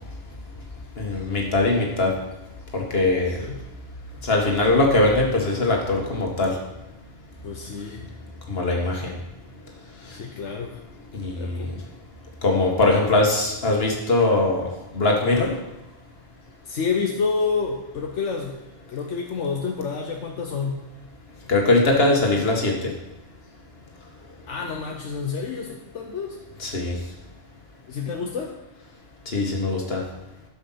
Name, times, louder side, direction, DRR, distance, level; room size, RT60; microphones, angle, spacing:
voice 1, 1.0-2.1 2.7-3.4 4.2-6.6 8.5-9.1 11.1-11.7 12.4-14.6 14.9-15.5 21.5-22.9 26.6-26.9 29.3-30.0, left 2 dB, 60° left, 0 dB, 2.1 m, -21 dB
voice 2, 3.3-3.6 7.4-8.1 10.1-10.8 11.4-11.7 15.4-15.5 16.6-18.6 18.9-20.8 24.5-26.4 27.9-28.6, left 5 dB, 85° left, 2 dB, 1.3 m, -29 dB
12.5 x 5.8 x 5.8 m, 0.97 s
omnidirectional pair, 1.2 m